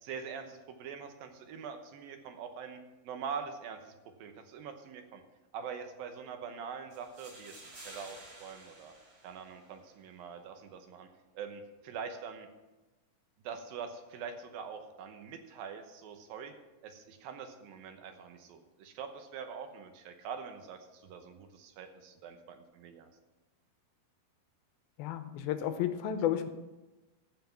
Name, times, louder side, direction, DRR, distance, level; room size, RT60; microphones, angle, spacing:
voice 1, 0.0-2.8 3.0-5.2 5.5-8.9 9.2-11.1 11.3-12.5 13.4-16.5 16.8-23.1, right 6 dB, 75° right, 6 dB, 2.6 m, -44 dB
sound 1, 6.9-9.9, right 2 dB, 35° right, 2.9 m, -52 dB
voice 2, 25.0-26.5, left 10 dB, 85° left, 9 dB, 2.5 m, -32 dB
14.0 x 5.9 x 5.8 m, 1.1 s
omnidirectional pair, 4.4 m